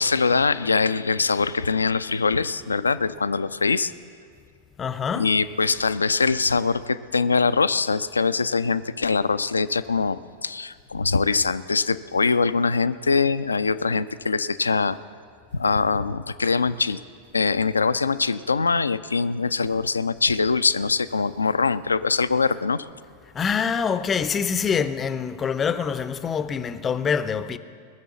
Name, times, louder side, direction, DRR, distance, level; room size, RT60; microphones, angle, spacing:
voice 1, 0.0-3.9 5.1-15.0 15.5-17.0 17.3-22.9, left 4 dB, 75° left, 0.4 m, -23 dB
voice 2, 4.8-5.3 23.3-27.6, left 6 dB, 20° left, 0.5 m, -25 dB
20.0 x 6.8 x 7.3 m
figure-of-eight pair, 90°, 0 cm